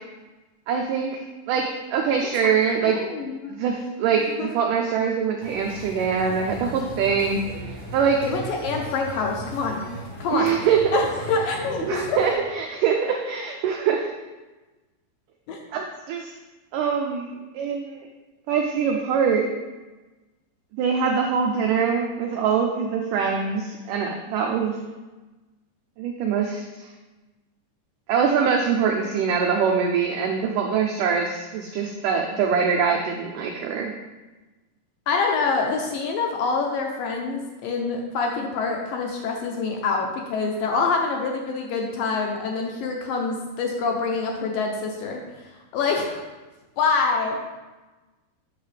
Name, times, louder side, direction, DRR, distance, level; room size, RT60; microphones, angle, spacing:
voice 1, 0.7-3.0 3.5-7.4 7.9-8.2 10.3-11.0 11.8-14.1 15.7-16.3 16.7-18.1 18.5-19.5 20.8-24.8 26.0-26.9 28.1-33.9, right 6 dB, 85° right, 1 dB, 1.8 m, -23 dB
voice 2, 2.8-3.5 4.1-4.5 8.2-9.8 10.2-10.5 10.9-12.2 15.5-15.6 35.1-46.2 46.8-47.5, left 4 dB, 75° left, 1 dB, 2.2 m, -26 dB
sound 1, 5.4-12.3, right 1 dB, 45° left, 0.9 m, -37 dB
8.6 x 6.4 x 3.3 m, 1.2 s
omnidirectional pair, 4.5 m